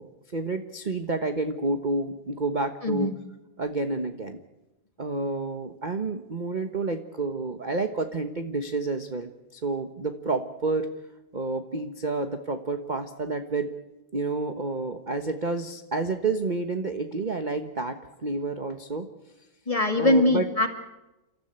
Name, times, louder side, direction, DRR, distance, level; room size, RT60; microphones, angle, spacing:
voice 1, 0.0-3.1 3.6-4.4 5.0-10.9 11.3-13.7 14.1-19.1 20.0-20.5, right 3 dB, 30° right, 7 dB, 1.1 m, -29 dB
voice 2, 2.8-3.1 19.7-20.7, left 1 dB, 15° left, 5 dB, 2.1 m, -22 dB
30.0 x 14.0 x 8.9 m, 1.0 s
omnidirectional pair, 2.2 m